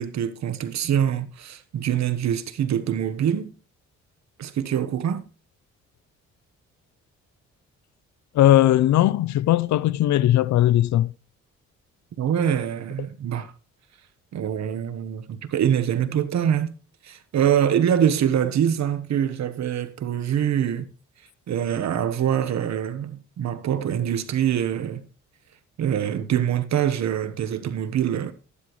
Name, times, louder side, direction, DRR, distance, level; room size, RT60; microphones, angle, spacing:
voice 1, 0.0-3.5 4.4-5.2 12.2-13.5 14.3-16.8 17.0-20.9 21.5-25.0 25.8-28.3, right 9 dB, 65° right, 1.2 m, -24 dB
voice 2, 8.3-11.1, left 13 dB, 70° left, 0.6 m, -18 dB
12.5 x 11.5 x 3.1 m
cardioid pair, 90°, 30 cm